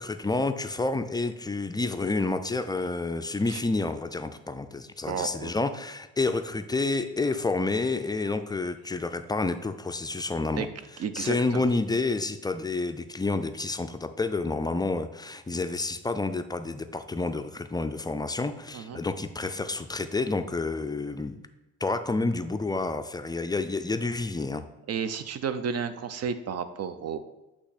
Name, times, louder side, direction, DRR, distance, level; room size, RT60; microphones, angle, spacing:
voice 1, 0.0-10.7 11.1-21.4 21.8-24.6, left 3 dB, 15° left, 9 dB, 0.3 m, -29 dB
voice 2, 5.0-5.5 10.6-10.7 11.0-11.7 18.7-19.0 24.9-27.2, right 6 dB, 55° right, 11 dB, 0.5 m, -32 dB
8.1 x 2.9 x 4.1 m, 1.0 s
cardioid pair, 90°, 30 cm